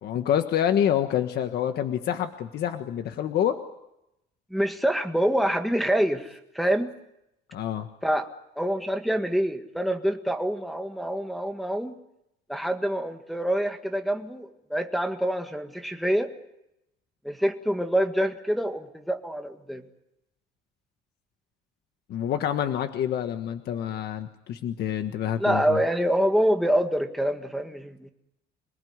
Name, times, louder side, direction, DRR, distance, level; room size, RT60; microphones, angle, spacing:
voice 1, 0.0-3.6 7.5-7.9 22.1-25.8, left 10 dB, 60° left, 8 dB, 1.5 m, -27 dB
voice 2, 4.5-6.9 8.0-8.3 8.6-12.0 12.5-16.3 17.2-19.8 25.4-28.1, equal, ahead, 4 dB, 1.8 m, -26 dB
27.5 x 19.5 x 9.7 m, 0.86 s
cardioid pair, 160°, 19 cm